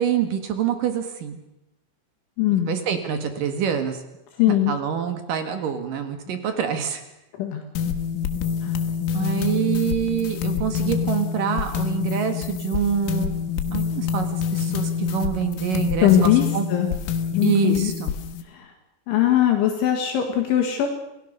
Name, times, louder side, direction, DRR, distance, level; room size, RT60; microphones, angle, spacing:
voice 1, 0.0-1.4 2.7-4.0 4.5-7.0 9.1-13.3 13.7-16.7 17.4-18.1, right 8 dB, 60° right, 8 dB, 2.5 m, -26 dB
voice 2, 2.4-2.8 4.4-4.7 7.4-7.6 8.6-8.8 16.0-16.4 16.7-16.9 17.3-17.9 18.5-18.7 19.1-20.9, left 11 dB, 70° left, 3 dB, 4.0 m, -20 dB
sound 1, 7.8-18.4, left 7 dB, 90° left, 4.2 m, -26 dB
28.0 x 17.0 x 6.7 m, 0.91 s
omnidirectional pair, 5.9 m